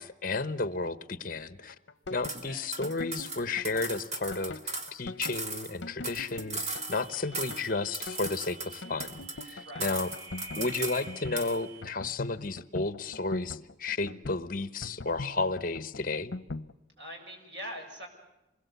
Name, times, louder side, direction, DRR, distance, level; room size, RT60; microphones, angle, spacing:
voice 1, 0.0-1.7 2.1-10.1 10.6-16.3, left 3 dB, 45° left, 14 dB, 1.0 m, -33 dB
sound 1, 1.6-16.7, left 2 dB, 70° left, 0.8 m, -42 dB
sound 2, 2.2-2.4 2.7-4.9 5.2-7.1 7.3-7.7 7.9-9.5 9.8-11.0 11.4-11.6, right 3 dB, 35° right, 2.1 m, -37 dB
sound 3, 6.7-11.8, right 2 dB, 85° right, 2.2 m, -48 dB
voice 2, 9.6-10.0 17.0-18.1, equal, 65° right, 3 dB, 6.6 m, -42 dB
27.0 x 21.0 x 8.2 m, 0.96 s
head